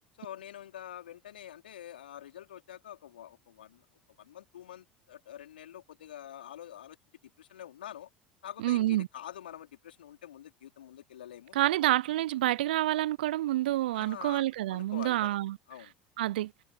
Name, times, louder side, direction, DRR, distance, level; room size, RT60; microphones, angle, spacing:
voice 1, 0.2-3.8 4.2-7.0 7.4-8.1 8.4-11.6 13.9-15.9, left 11 dB, 80° left, 4.2 m, -46 dB
voice 2, 8.6-9.1 11.5-15.6 16.2-16.5, right 15 dB, 75° right, 0.6 m, -28 dB
figure-of-eight pair, 70°, 5 cm